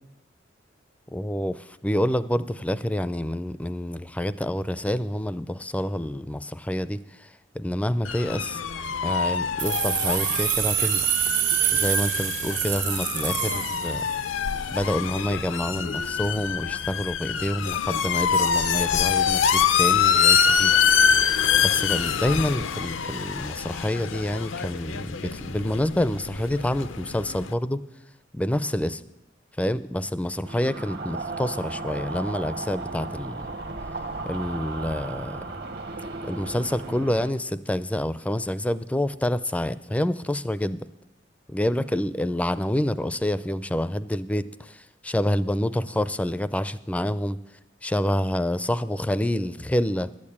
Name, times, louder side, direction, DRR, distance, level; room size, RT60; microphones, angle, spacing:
voice 1, 1.1-7.3 7.5-8.6 9.0-11.1 11.7-14.0 14.7-20.8 21.6-27.8 28.3-29.0 29.6-33.5 34.2-35.4 36.2-40.9 41.5-47.4 47.8-50.1, left 1 dB, 5° left, 15 dB, 0.4 m, -27 dB
sound 1, 8.0-27.5, left 7 dB, 85° left, 0.6 m, -25 dB
sound 2, 9.6-14.4, right 12 dB, 45° right, 0.6 m, -26 dB
sound 3, 30.4-37.3, right 3 dB, 60° right, 1.1 m, -35 dB
11.5 x 8.7 x 8.5 m, 0.90 s
head